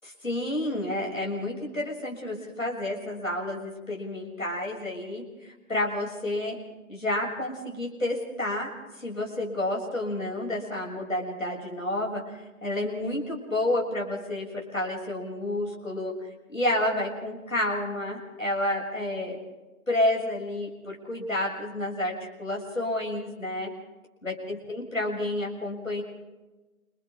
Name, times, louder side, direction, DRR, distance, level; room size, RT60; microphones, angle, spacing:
voice 1, 0.2-6.6 6.9-8.7 9.0-16.1 16.5-19.4 19.9-23.7 24.2-26.0, left 1 dB, 65° left, -1 dB, 6.8 m, -30 dB
29.5 x 25.0 x 3.6 m, 1.1 s
figure-of-eight pair, 175°, 44 cm